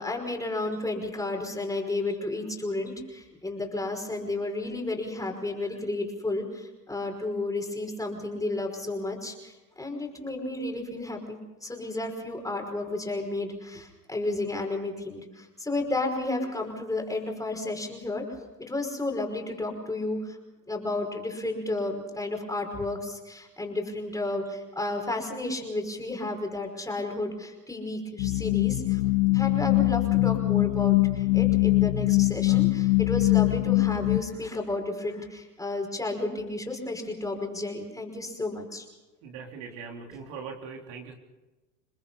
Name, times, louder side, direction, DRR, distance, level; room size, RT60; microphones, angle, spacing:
voice 1, 0.0-18.2 18.6-20.4 20.7-29.0 29.3-38.9 40.1-40.2, left 2 dB, 5° left, 2 dB, 5.2 m, -32 dB
sound 1, 28.2-34.2, left 19 dB, 60° left, 2.0 m, -22 dB
voice 2, 39.2-41.1, right 5 dB, 55° right, 2 dB, 3.7 m, -40 dB
29.0 x 20.0 x 5.6 m, 1.1 s
hypercardioid pair, 105°, 49 cm